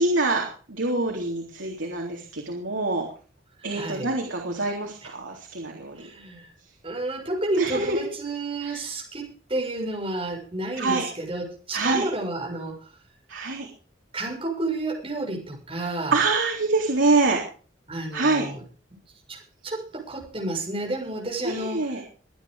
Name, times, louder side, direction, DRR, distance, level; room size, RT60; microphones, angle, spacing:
voice 1, 0.0-3.1 3.6-6.0 7.6-8.0 8.6-8.8 10.8-11.0 11.7-12.1 13.3-13.7 16.1-17.4 18.1-18.5 21.4-22.0, right 3 dB, 80° right, 0 dB, 3.7 m, -25 dB
voice 2, 3.6-4.1 6.0-6.4 6.8-12.8 14.1-16.2 17.9-18.6 19.3-22.0, right 2 dB, 30° right, 0 dB, 7.0 m, -31 dB
23.0 x 9.8 x 5.1 m, 0.40 s
head